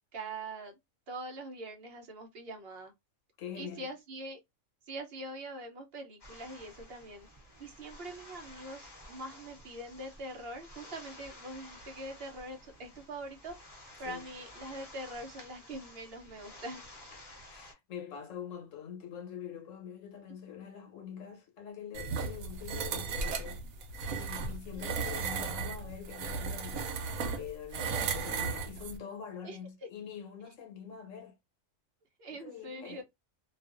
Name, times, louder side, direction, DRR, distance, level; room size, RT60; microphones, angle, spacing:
voice 1, 0.1-0.7 1.1-2.9 3.5-4.4 4.9-7.3 7.6-13.5 13.8-16.8 24.7-25.2 29.4-29.6 32.2-33.0, right 1 dB, 60° right, 0.8 m, -43 dB
voice 2, 3.4-3.9 14.0-14.2 17.1-23.6 24.0-31.4 32.3-33.0, left 8 dB, 75° left, 1.1 m, -45 dB
sound 1, 6.2-17.7, left 1 dB, 20° left, 0.9 m, -52 dB
sound 2, 21.9-29.0, right 5 dB, 90° right, 1.0 m, -35 dB
2.4 x 2.3 x 2.4 m
omnidirectional pair, 1.4 m